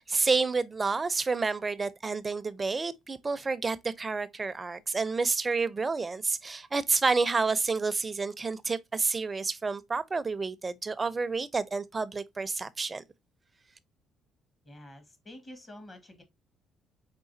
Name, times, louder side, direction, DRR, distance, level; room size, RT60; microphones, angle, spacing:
voice 1, 0.0-13.0, right 4 dB, 25° right, 0.6 m, -29 dB
voice 2, 14.6-16.2, left 1 dB, 30° left, 1.6 m, -48 dB
4.8 x 3.8 x 2.6 m
cardioid pair, 90°, 0 cm